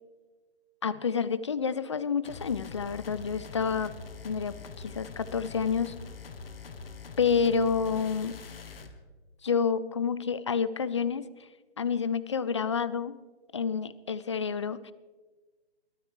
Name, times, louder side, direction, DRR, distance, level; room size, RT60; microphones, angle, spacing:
voice 1, 0.8-3.9 4.2-5.9 7.2-8.4 9.4-11.3 11.8-13.2 13.5-14.9, left 6 dB, 30° left, 17 dB, 0.4 m, -29 dB
sound 1, 2.2-8.9, left 5 dB, 60° left, 1.6 m, -44 dB
23.0 x 13.0 x 3.2 m, 1.3 s
figure-of-eight pair, 140°, 33 cm